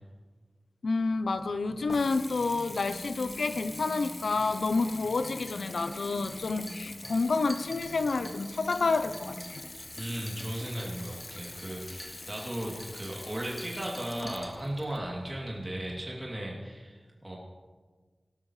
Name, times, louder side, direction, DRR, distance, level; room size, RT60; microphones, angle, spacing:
voice 1, 0.8-9.6, left 3 dB, 85° left, 11 dB, 0.6 m, -29 dB
Water tap faucet / Bathtub (filling or washing) / Trickle dribble, 1.2-16.1, left 2 dB, 40° left, 0.6 m, -45 dB
sound 1, 1.5-9.5, left 1 dB, 20° left, 1.3 m, -46 dB
sound 2, 5.1-15.1, equal, ahead, 2.0 m, -51 dB
voice 2, 9.9-17.4, right 1 dB, 20° right, -4 dB, 3.0 m, -36 dB
18.5 x 12.5 x 3.3 m, 1.4 s
wide cardioid pair, 60°, 0 cm